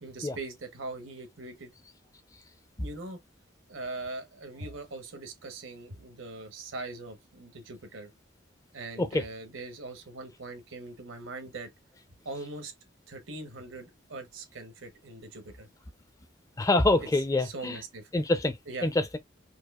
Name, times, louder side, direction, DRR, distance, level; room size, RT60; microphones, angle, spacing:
voice 1, 0.0-1.7 2.8-3.2 3.7-8.1 8.7-11.7 12.2-12.7 13.1-15.7 17.0-18.1 18.7-18.9, right 3 dB, 90° right, 1.1 m, -41 dB
voice 2, 16.6-17.8 18.1-18.5 18.8-19.2, left 2 dB, 15° left, 0.4 m, -25 dB
4.6 x 2.3 x 2.3 m
head